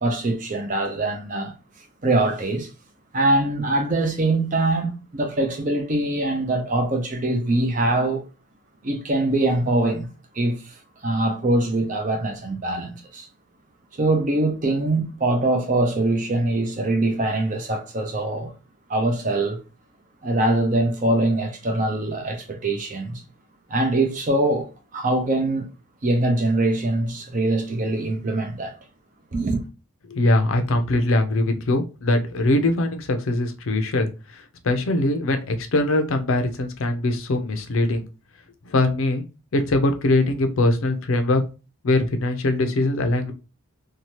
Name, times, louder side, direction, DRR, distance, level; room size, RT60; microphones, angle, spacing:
voice 1, 0.0-1.5 2.0-2.7 3.1-8.2 8.8-10.1 10.3-10.8 11.0-13.3 14.0-18.5 18.9-19.6 20.2-23.2 23.7-25.7 26.0-28.7 29.3-29.6, right 2 dB, 35° right, 0.6 m, -23 dB
voice 2, 30.1-38.0 38.7-39.2 39.5-41.4 41.8-43.3, left 2 dB, 65° left, 0.5 m, -22 dB
2.8 x 2.3 x 2.9 m
head